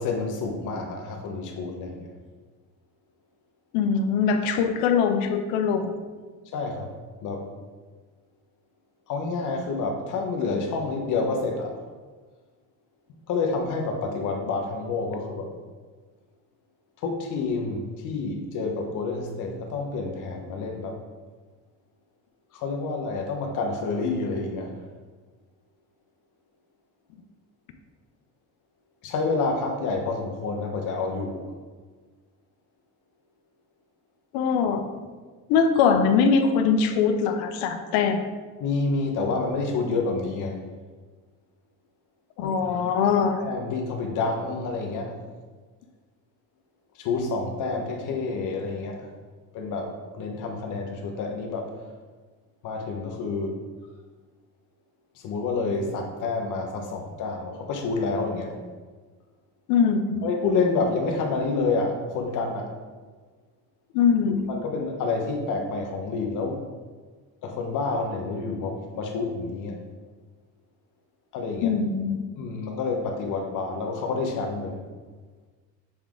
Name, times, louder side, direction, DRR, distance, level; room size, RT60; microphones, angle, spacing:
voice 1, 0.0-2.1 6.5-6.9 7.2-7.5 9.1-11.8 13.3-15.5 17.0-21.0 22.5-24.8 29.0-31.5 38.6-40.6 42.4-42.8 43.4-45.2 47.0-49.1 49.5-51.8 52.6-53.5 55.2-58.6 60.2-62.7 64.5-66.6 67.4-69.8 71.3-71.7 72.4-74.8, left 3 dB, 55° left, 3 dB, 1.1 m, -28 dB
voice 2, 3.7-5.9 34.3-34.8 35.5-38.2 42.4-43.4 59.7-60.2 63.9-64.5 71.6-72.2, left 6 dB, 80° left, 6 dB, 0.7 m, -22 dB
7.0 x 3.5 x 3.7 m, 1.4 s
cardioid pair, 120°, 36 cm